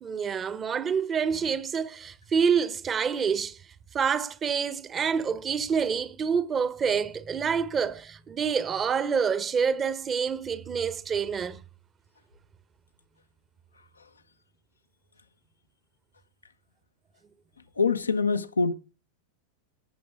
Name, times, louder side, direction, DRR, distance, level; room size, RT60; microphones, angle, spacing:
voice 1, 0.0-3.6 3.9-11.6, right 6 dB, 25° right, 1.2 m, -27 dB
voice 2, 17.8-18.7, left 4 dB, 75° left, 0.9 m, -24 dB
18.0 x 7.0 x 3.6 m
figure-of-eight pair, 90°, 0 cm